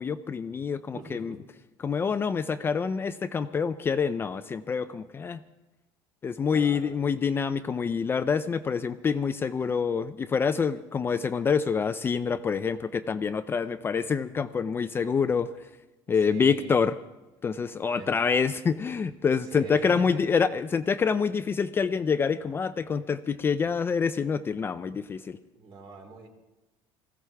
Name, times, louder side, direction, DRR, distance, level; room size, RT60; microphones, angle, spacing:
voice 1, 0.0-1.3 1.8-5.4 6.2-15.5 16.1-16.9 17.4-25.4, left 6 dB, 20° left, 10 dB, 0.4 m, -26 dB
voice 2, 0.9-1.4 6.5-6.9 16.1-16.8 17.9-18.1 19.4-20.3 25.5-26.3, right 3 dB, 50° right, 3 dB, 3.0 m, -43 dB
20.0 x 15.0 x 3.4 m, 1.1 s
cardioid pair, 135°, 10 cm